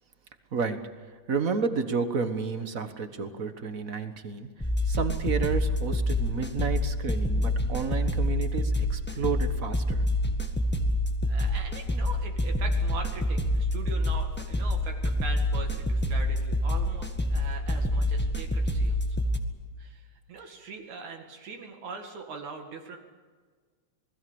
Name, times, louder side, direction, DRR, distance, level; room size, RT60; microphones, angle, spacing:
voice 1, 1.3-4.5 4.9-10.0, right 5 dB, 40° right, 9 dB, 1.2 m, -31 dB
sound 1, 4.6-19.4, left 1 dB, 10° left, 0.6 m, -27 dB
voice 2, 11.3-19.2 19.8-23.0, right 5 dB, 75° right, 4 dB, 3.3 m, -41 dB
27.5 x 20.5 x 7.1 m, 1.5 s
omnidirectional pair, 3.3 m